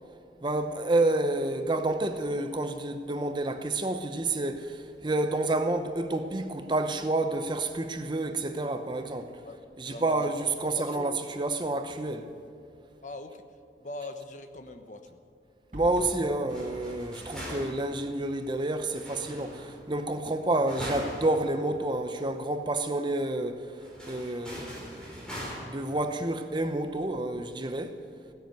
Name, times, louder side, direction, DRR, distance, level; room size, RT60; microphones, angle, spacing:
voice 1, 0.4-9.3 9.8-12.3 15.7-23.7 24.1-28.0, right 2 dB, 25° right, 0.8 m, -29 dB
voice 2, 9.4-10.3 10.8-11.1 13.0-13.4 13.8-15.2 16.1-16.2, left 2 dB, 45° left, 1.1 m, -42 dB
sound 1, 15.7-16.2, equal, 45° right, 5.0 m, -41 dB
sound 2, 16.5-18.0 18.9-19.9 20.7-21.4 21.7-21.8 22.3-22.4 23.8-25.5, equal, 5° left, 4.5 m, -41 dB
16.0 x 9.9 x 9.2 m
head